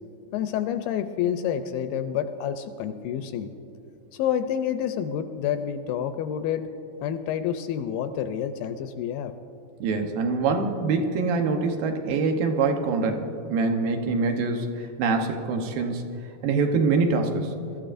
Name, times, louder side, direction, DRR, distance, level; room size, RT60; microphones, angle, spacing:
voice 1, 0.3-3.5 4.1-6.7 7.0-9.3, left 9 dB, 80° left, 9 dB, 2.2 m, -28 dB
voice 2, 9.8-14.7 15.0-16.0 16.4-17.5, right 4 dB, 75° right, 4 dB, 2.6 m, -24 dB
22.5 x 13.5 x 2.6 m, 2.8 s
omnidirectional pair, 4.3 m